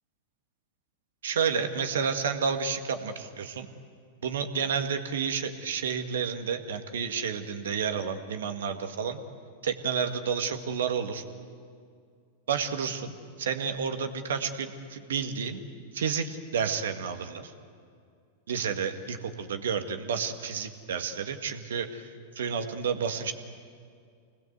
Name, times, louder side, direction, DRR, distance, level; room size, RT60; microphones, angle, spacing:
voice 1, 1.2-3.7 4.2-9.2 9.6-11.2 12.5-15.6 15.9-17.5 18.5-23.3, right 6 dB, 80° right, 7 dB, 1.8 m, -30 dB
26.0 x 20.0 x 8.2 m, 2.3 s
hypercardioid pair, 105°, 0 cm